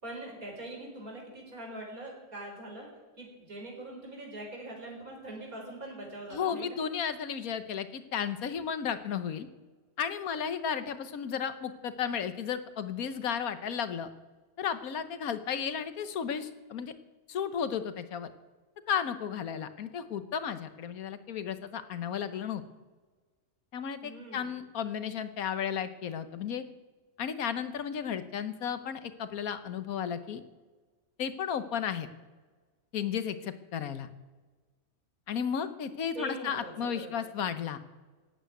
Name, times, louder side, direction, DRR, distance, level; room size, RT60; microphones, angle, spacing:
voice 1, 0.0-2.9 3.2-6.8 24.0-24.5 36.1-37.1, right 1 dB, 80° right, 0 dB, 4.9 m, -42 dB
voice 2, 6.3-9.5 10.0-14.1 14.6-16.9 17.3-18.3 18.9-22.6 23.7-26.6 27.2-30.4 31.2-32.1 32.9-34.1 35.3-37.8, left 7 dB, 80° left, 11 dB, 1.4 m, -34 dB
16.0 x 8.9 x 9.3 m, 1.3 s
omnidirectional pair, 1.5 m